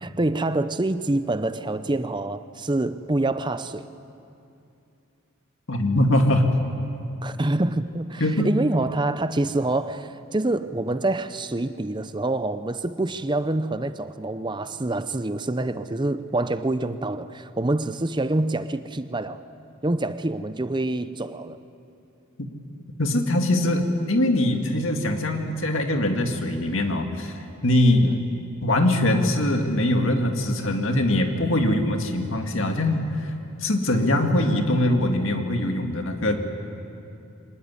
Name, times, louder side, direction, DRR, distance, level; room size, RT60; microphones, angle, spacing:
voice 1, 0.0-3.8 7.2-19.4 19.8-21.6 28.0-28.2, right 2 dB, 20° right, 12 dB, 0.6 m, -26 dB
voice 2, 5.7-6.5 8.2-8.5 23.0-27.3 27.6-28.2 28.6-33.3 33.6-36.3, left 1 dB, 65° left, 4 dB, 2.1 m, -22 dB
24.5 x 19.5 x 9.6 m, 2.7 s
head